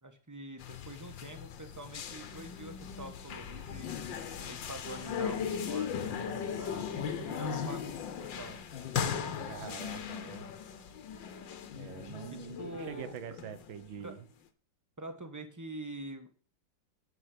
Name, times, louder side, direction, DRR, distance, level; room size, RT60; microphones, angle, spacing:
voice 1, 0.0-8.6 12.3-13.2 14.0-14.2 15.0-16.3, right 1 dB, 10° right, 6 dB, 1.2 m, -45 dB
sound 1, 0.6-14.0, left 7 dB, 75° left, 1.7 m, -38 dB
voice 2, 9.5-10.4 11.7-14.2, right 9 dB, 85° right, 12 dB, 1.8 m, -45 dB
9.8 x 6.2 x 7.5 m, 0.42 s
omnidirectional pair, 2.1 m